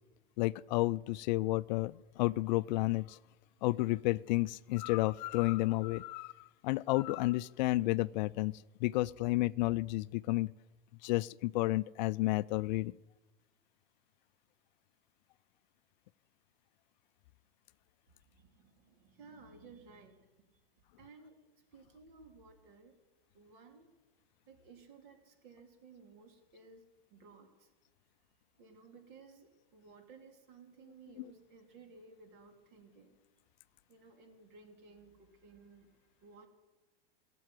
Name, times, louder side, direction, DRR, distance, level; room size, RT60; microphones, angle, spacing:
voice 1, 0.4-3.2 3.6-10.5 11.0-12.9 31.2-31.3, left 19 dB, 50° left, 18 dB, 0.4 m, -31 dB
voice 2, 18.1-20.6 21.0-23.0 23.3-23.9 24.5-26.8 27.1-27.7 28.6-33.2 33.9-36.5, right 4 dB, 55° right, 4 dB, 3.3 m, -57 dB
16.5 x 7.7 x 9.4 m, 1.1 s
hypercardioid pair, 105°, 29 cm